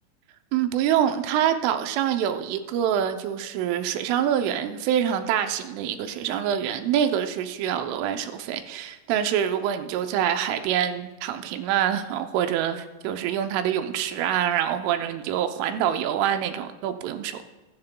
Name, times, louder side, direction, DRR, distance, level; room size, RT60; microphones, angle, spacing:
voice 1, 0.5-17.4, right 10 dB, 80° right, 8 dB, 3.1 m, -25 dB
22.0 x 10.5 x 2.2 m, 1.2 s
omnidirectional pair, 5.8 m